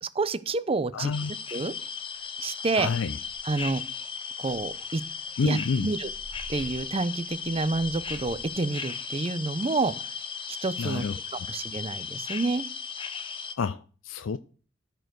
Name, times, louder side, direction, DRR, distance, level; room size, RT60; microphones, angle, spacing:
voice 1, 0.0-1.1 1.5-1.7 2.4-2.9 3.4-3.8 4.4-5.0 5.4-6.1 6.5-10.2 10.5-11.0 11.5-12.7, right 3 dB, 30° right, 16 dB, 0.5 m, -28 dB
voice 2, 0.9-1.3 2.7-3.2 5.4-5.9 10.8-11.2 13.6-14.4, left 5 dB, 80° left, 11 dB, 0.4 m, -29 dB
sound 1, 1.1-13.5, left 6 dB, 25° left, 0.8 m, -36 dB
sound 2, 1.8-1.9 2.2-2.5 2.8-2.9 3.2-3.9 4.4-8.6, right 1 dB, 55° right, 0.9 m, -49 dB
12.5 x 4.5 x 6.2 m, 0.40 s
head